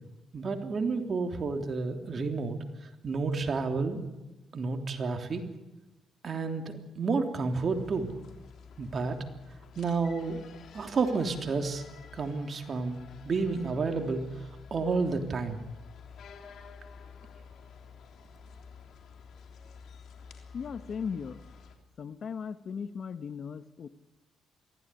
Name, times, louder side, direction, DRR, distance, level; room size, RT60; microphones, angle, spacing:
voice 1, 0.3-2.6 3.0-4.0 4.5-5.4 6.2-8.1 8.8-9.2 9.7-10.4 10.7-11.8 12.1-15.6, right 4 dB, 45° right, 4 dB, 3.2 m, -30 dB
sound 1, 7.6-21.8, left 6 dB, 70° left, 3.4 m, -50 dB
voice 2, 20.5-21.4 22.0-23.9, left 6 dB, 50° left, 12 dB, 1.1 m, -37 dB
23.5 x 16.0 x 10.0 m, 1.0 s
cardioid pair, 90°, 0 cm